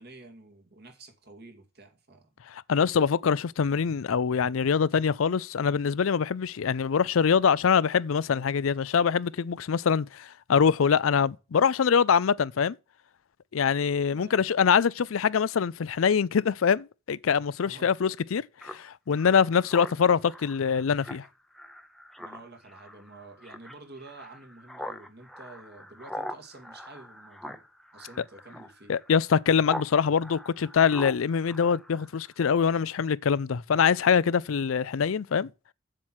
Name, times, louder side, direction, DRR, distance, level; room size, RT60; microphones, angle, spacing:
voice 1, 0.0-2.3 14.1-14.5 17.6-17.9 19.3-19.4 22.2-27.6 27.9-28.9, right 2 dB, 55° right, 2.3 m, -49 dB
voice 2, 2.5-12.8 13.5-21.2 28.9-35.5, left 6 dB, 85° left, 0.5 m, -24 dB
Speech synthesizer, 18.6-29.9 30.2-32.4, equal, ahead, 0.7 m, -42 dB
7.5 x 7.4 x 6.4 m
head